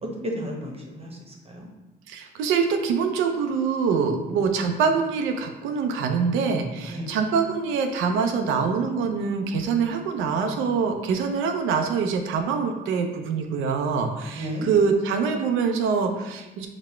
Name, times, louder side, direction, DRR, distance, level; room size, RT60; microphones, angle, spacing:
voice 1, 0.0-1.7 6.9-7.1 14.3-14.7, equal, 30° right, 0 dB, 0.9 m, -33 dB
voice 2, 2.1-16.7, right 5 dB, 90° right, 5 dB, 0.5 m, -24 dB
4.0 x 2.1 x 4.3 m, 1.1 s
cardioid pair, 90°, 20 cm